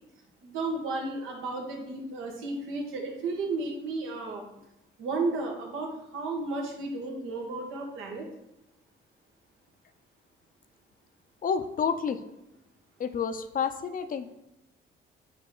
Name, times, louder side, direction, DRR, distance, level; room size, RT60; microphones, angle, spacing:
voice 1, 0.4-4.5 5.0-8.3, right 3 dB, 85° right, 0 dB, 1.4 m, -33 dB
voice 2, 11.4-12.2 13.0-14.3, left 6 dB, 45° left, 10 dB, 0.5 m, -29 dB
8.2 x 3.0 x 3.8 m, 0.88 s
cardioid pair, 90°, 20 cm